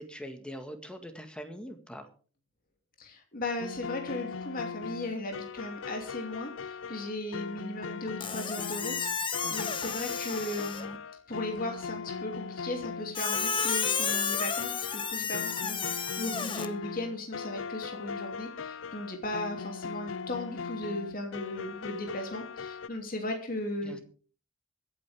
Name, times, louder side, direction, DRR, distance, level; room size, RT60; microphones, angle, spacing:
voice 1, 0.0-2.1 9.4-9.7 23.8-24.0, equal, 5° left, 6 dB, 1.8 m, -42 dB
voice 2, 3.0-11.0 11.3-24.0, left 1 dB, 50° left, 3 dB, 2.9 m, -37 dB
sound 1, 3.6-22.9, left 5 dB, 80° left, 0.5 m, -40 dB
Squeak, 8.2-11.0 13.1-16.7, left 6 dB, 25° left, 1.1 m, -32 dB
24.0 x 9.0 x 3.6 m, 0.41 s
head